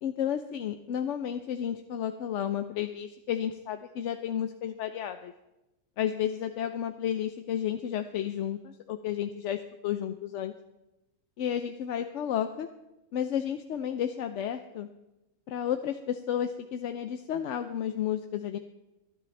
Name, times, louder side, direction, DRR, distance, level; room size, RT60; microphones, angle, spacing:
voice 1, 0.0-5.3 6.0-10.5 11.4-12.7 13.1-14.9 15.5-18.6, left 9 dB, 70° left, 8 dB, 0.9 m, -32 dB
21.5 x 10.5 x 3.3 m, 0.96 s
omnidirectional pair, 1.4 m